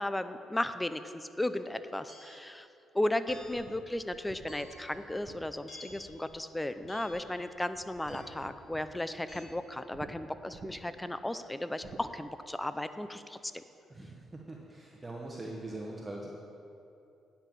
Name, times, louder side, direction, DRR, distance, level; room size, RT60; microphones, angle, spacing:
voice 1, 0.0-2.7 2.9-13.6, left 1 dB, 10° left, 11 dB, 0.5 m, -35 dB
sound 1, 2.1-2.5 3.3-3.7 4.5-4.9 5.7-6.1 6.9-7.3 8.1-8.5 9.3-9.4, left 2 dB, 35° left, 2.7 m, -52 dB
sound 2, 3.3-6.5 6.8-7.4 7.7-9.4 9.9-10.1 10.5-11.0 11.8-12.1, right 4 dB, 45° right, 1.1 m, -51 dB
voice 2, 13.9-16.3, right 2 dB, 15° right, -3 dB, 1.2 m, -42 dB
9.9 x 5.7 x 7.5 m, 2.7 s
cardioid pair, 90°, 0 cm